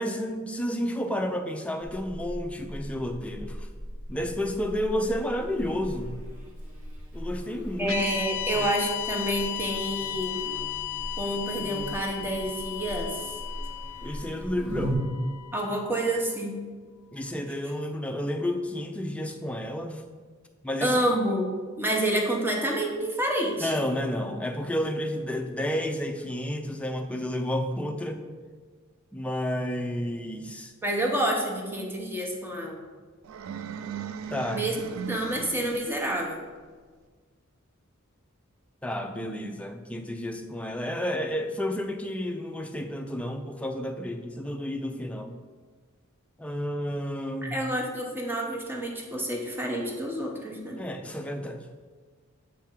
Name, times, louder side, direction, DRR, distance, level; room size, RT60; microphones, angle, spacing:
voice 1, 0.0-3.7 4.1-6.1 7.1-8.0 8.5-8.7 14.0-15.0 17.1-20.0 20.6-21.0 23.6-28.2 29.1-30.7 34.3-34.7 38.8-45.4 46.4-47.6 50.8-51.6, left 1 dB, 5° left, 4 dB, 0.5 m, -31 dB
Buzz, 1.8-15.0, equal, 40° right, 1.3 m, -39 dB
voice 2, 7.8-10.4 11.2-13.3 15.5-16.6 20.8-21.5 21.8-23.7 30.8-32.8 34.5-34.8 35.1-36.4 47.4-50.8, right 1 dB, 10° right, 0 dB, 0.9 m, -28 dB
sound 1, 7.9-16.2, left 14 dB, 65° left, 0.5 m, -35 dB
sound 2, 33.2-36.1, right 7 dB, 70° right, 0.3 m, -38 dB
7.4 x 3.5 x 4.5 m, 1.5 s
head